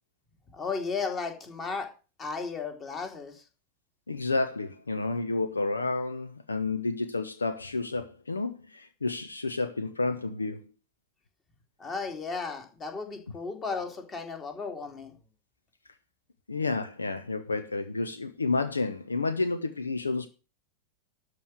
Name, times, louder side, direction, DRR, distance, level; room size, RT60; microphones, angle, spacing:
voice 1, 0.5-1.9 2.2-3.4 11.8-15.1, left 4 dB, 25° left, 2.9 m, -34 dB
voice 2, 4.1-10.6 16.5-20.3, left 3 dB, 75° left, 0.8 m, -30 dB
12.5 x 5.1 x 7.7 m
figure-of-eight pair, 90°, 0 cm